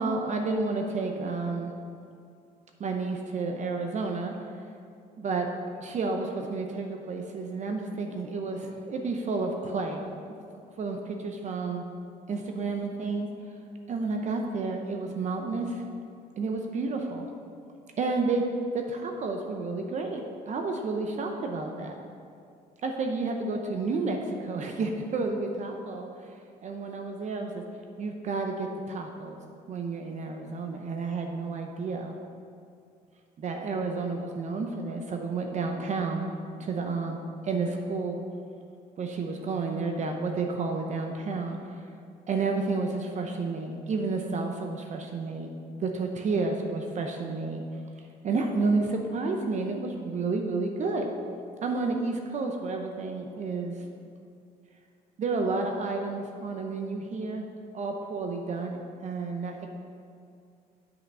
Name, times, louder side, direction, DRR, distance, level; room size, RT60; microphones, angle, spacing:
voice 1, 0.0-1.7 2.8-4.6 5.2-5.5 5.7-10.0 10.8-11.8 12.3-13.3 13.9-15.8 16.4-17.3 18.0-18.4 18.7-22.1 22.8-26.4 26.6-27.6 28.0-29.4 29.7-32.1 33.4-36.3 36.6-37.2 37.4-38.2 39.0-41.9 42.3-45.5 45.8-47.6 48.2-51.1 51.6-53.7 55.2-57.4 57.7-59.7, right 3 dB, 45° right, 3 dB, 0.8 m, -31 dB
7.9 x 5.8 x 5.5 m, 2.4 s
cardioid pair, 110°, 17 cm